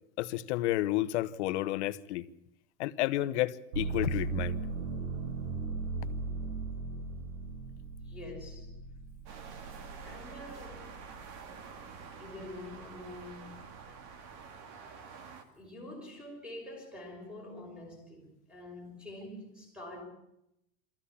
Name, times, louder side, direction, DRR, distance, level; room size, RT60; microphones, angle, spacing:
voice 1, 0.2-2.3 2.8-4.6, left 15 dB, 60° left, 1.1 m, -31 dB
sound 1, 3.7-11.5 12.0-12.8, right 4 dB, 75° right, 3.0 m, -38 dB
voice 2, 8.0-8.7 10.0-11.0 12.2-13.6 15.6-20.0, left 1 dB, ahead, 5.9 m, -46 dB
sound 2, 9.3-15.4, right 5 dB, 45° right, 2.5 m, -48 dB
24.0 x 15.0 x 8.5 m
supercardioid pair, 160°, 38 cm